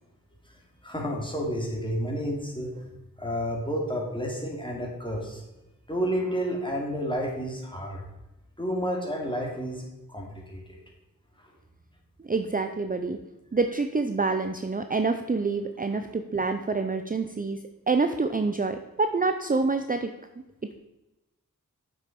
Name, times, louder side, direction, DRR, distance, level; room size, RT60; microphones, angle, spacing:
voice 1, 0.8-2.8 3.2-5.4 5.9-8.0 8.6-9.8 10.1-10.8 11.4-11.5, equal, 15° left, -1 dB, 2.7 m, -30 dB
voice 2, 12.2-13.2 13.5-20.1, right 3 dB, 25° right, 8 dB, 0.5 m, -27 dB
7.5 x 6.3 x 5.2 m, 1.0 s
cardioid pair, 45°, 34 cm